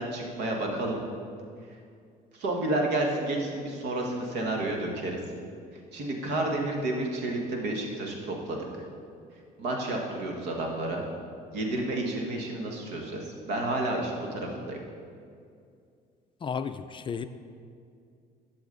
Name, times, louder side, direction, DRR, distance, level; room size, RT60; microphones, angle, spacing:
voice 1, 0.1-1.0 2.3-5.2 5.9-8.6 9.6-11.1 11.5-13.2 13.5-14.8, right 2 dB, 80° right, 0 dB, 1.6 m, -30 dB
voice 2, 16.4-17.3, left 6 dB, 30° left, 10 dB, 0.4 m, -33 dB
12.0 x 6.3 x 3.9 m, 2.3 s
cardioid pair, 110°, 17 cm